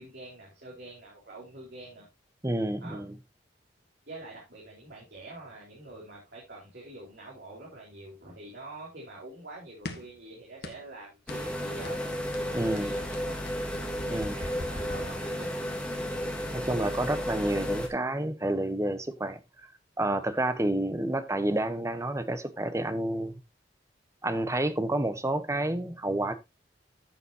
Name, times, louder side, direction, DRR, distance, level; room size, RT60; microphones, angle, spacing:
voice 1, 0.0-2.1 2.8-3.1 4.1-12.1 12.4-13.5 14.1-15.5, right 2 dB, 60° right, 4.1 m, -46 dB
voice 2, 2.4-3.2 12.5-12.9 14.1-14.4 16.5-19.4 20.0-23.3 24.2-26.3, right 1 dB, 15° right, 1.0 m, -29 dB
sound 1, 9.8-10.2 10.6-10.9 11.3-11.5 11.8-12.1 12.3-15.7, left 1 dB, 60° left, 1.5 m, -41 dB
sound 2, 11.3-17.9, equal, 5° left, 2.0 m, -33 dB
14.0 x 7.2 x 2.8 m
head